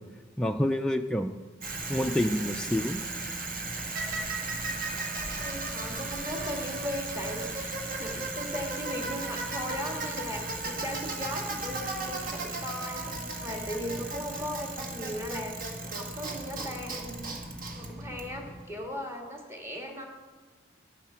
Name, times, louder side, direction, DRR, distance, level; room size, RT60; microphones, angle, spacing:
voice 1, 0.4-1.4 1.9-3.1, left 1 dB, 5° left, 4 dB, 0.3 m, -28 dB
Bicycle, 1.6-18.7, right 2 dB, 45° right, 1.6 m, -35 dB
voice 2, 5.4-17.3 17.7-20.1, equal, 15° right, 1 dB, 1.7 m, -38 dB
11.0 x 8.6 x 5.7 m, 1.4 s
head